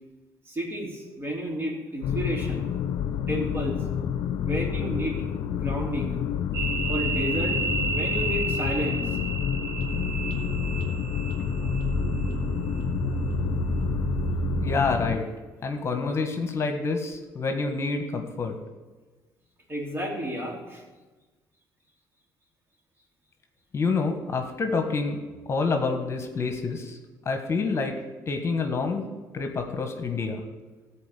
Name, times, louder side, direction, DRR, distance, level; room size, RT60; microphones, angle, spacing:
voice 1, 0.4-2.6 3.3-3.8 4.4-6.2 6.9-9.2 19.7-20.8, equal, 30° right, -1 dB, 3.4 m, -32 dB
sound 1, 2.0-15.2, left 8 dB, 75° left, 0.6 m, -29 dB
sound 2, 6.5-15.1, right 4 dB, 65° right, 2.2 m, -31 dB
voice 2, 14.6-15.3 15.6-18.5 23.7-25.2 25.5-27.0 27.2-27.9 28.3-29.1 29.3-30.4, left 4 dB, 40° left, 5 dB, 1.5 m, -27 dB
14.0 x 4.7 x 8.4 m, 1.3 s
supercardioid pair, 85°, 7 cm